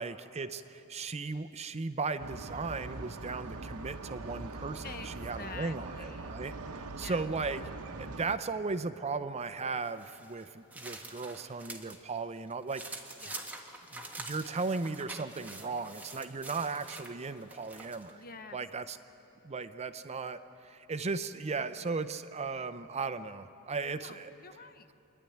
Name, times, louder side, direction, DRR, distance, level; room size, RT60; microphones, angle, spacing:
voice 1, 0.0-7.6 8.0-13.0 13.9-18.2 18.5-19.0 19.4-24.3, right 4 dB, 30° right, 11 dB, 0.6 m, -36 dB
sound 1, 2.2-8.4, right 3 dB, 75° right, 0.9 m, -42 dB
voice 2, 4.8-6.4 6.9-7.3 13.2-13.5 18.1-18.6 23.9-24.9, left 5 dB, 40° left, 10 dB, 0.8 m, -48 dB
sound 2, 9.8-12.0 12.4-18.1, right 2 dB, 10° right, 1.5 m, -46 dB
26.5 x 11.5 x 9.3 m, 3.0 s
head